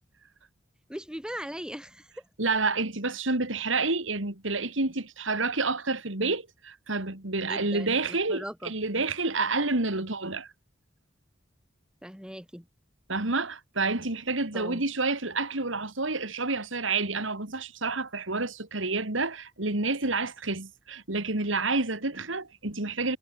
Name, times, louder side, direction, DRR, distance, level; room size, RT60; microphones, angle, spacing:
voice 1, 0.9-2.1 7.4-8.7 12.0-12.6 14.5-14.8, equal, 5° right, 3.2 m, -39 dB
voice 2, 2.4-10.5 13.1-23.2, right 3 dB, 75° right, 3.1 m, -29 dB
head